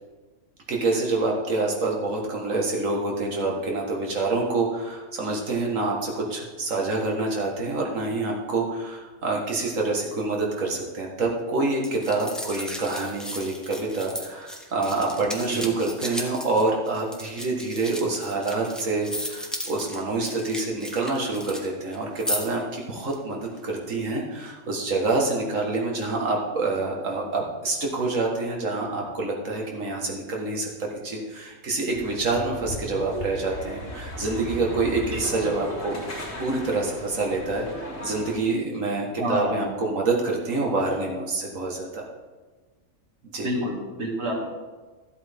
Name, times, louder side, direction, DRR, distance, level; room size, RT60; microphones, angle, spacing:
voice 1, 0.7-36.0 36.4-42.0 43.3-43.5, right 3 dB, 75° right, -1 dB, 2.0 m, -27 dB
sound 1, 11.8-21.7 21.9-22.6 23.0-23.1, equal, ahead, 0.9 m, -35 dB
sound 2, 31.9-38.4, equal, 75° left, 2.8 m, -36 dB
voice 2, 39.2-39.6 43.4-44.4, equal, 55° right, -1 dB, 2.2 m, -28 dB
13.5 x 8.0 x 3.6 m, 1.3 s
omnidirectional pair, 1.3 m